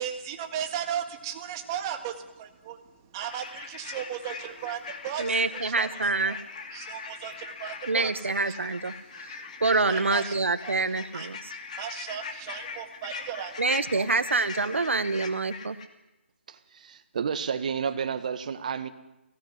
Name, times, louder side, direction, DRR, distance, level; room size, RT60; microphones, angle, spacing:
voice 1, 0.0-2.8 3.1-5.9 6.2-6.4 6.7-8.6 9.3-9.5 9.8-10.3 10.6-11.3 11.8-14.2, right 9 dB, 20° right, 1.7 m, -36 dB
sound 1, 3.2-15.8, left 5 dB, 35° left, 2.5 m, -41 dB
voice 2, 5.2-6.4 7.9-8.9 9.2-11.5 13.6-15.8, right 3 dB, 85° right, 1.6 m, -26 dB
voice 3, 16.5-18.9, right 6 dB, 40° right, 1.7 m, -31 dB
22.0 x 18.0 x 9.6 m
hypercardioid pair, 165°, 7 cm